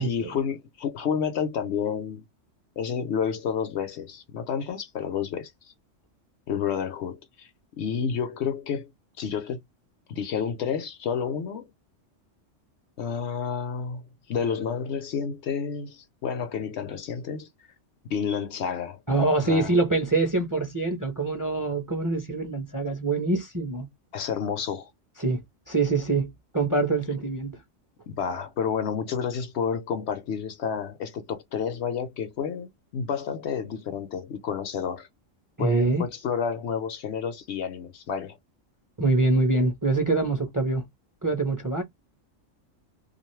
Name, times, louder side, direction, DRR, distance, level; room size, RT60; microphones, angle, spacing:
voice 1, 0.0-2.2 2.8-5.7 6.5-7.5 7.8-8.9 9.2-9.6 10.1-11.7 13.0-17.5 18.1-19.0 19.4-19.7 24.1-24.9 28.1-35.1 35.6-38.4, left 7 dB, 65° left, 0.8 m, -30 dB
voice 2, 19.1-23.9 25.2-27.6 35.6-36.1 39.0-40.8 41.2-41.8, right 3 dB, 20° right, 0.5 m, -25 dB
2.5 x 2.4 x 3.1 m
omnidirectional pair, 1.3 m